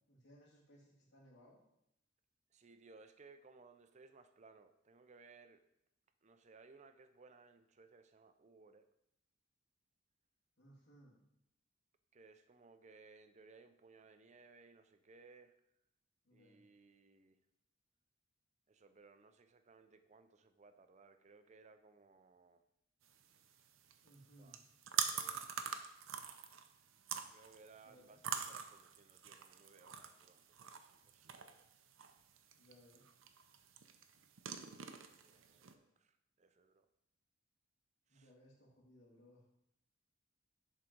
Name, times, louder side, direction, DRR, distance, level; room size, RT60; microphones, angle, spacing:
voice 1, 0.0-1.6 10.6-11.2 16.2-16.6 24.0-24.6 27.8-28.3 32.5-33.1 35.5-35.6 38.1-39.4, equal, 60° left, -4 dB, 2.6 m, -64 dB
voice 2, 2.5-5.6 6.2-8.9 12.1-15.5 16.3-17.4 18.7-22.6 24.4-24.6 24.9-25.4 27.3-31.7 34.9-36.9 38.1-38.3, right 4 dB, 35° right, 9 dB, 0.5 m, -63 dB
sound 1, 23.0-35.7, right 8 dB, 85° right, 0.6 m, -45 dB
10.5 x 3.8 x 4.5 m, 0.81 s
head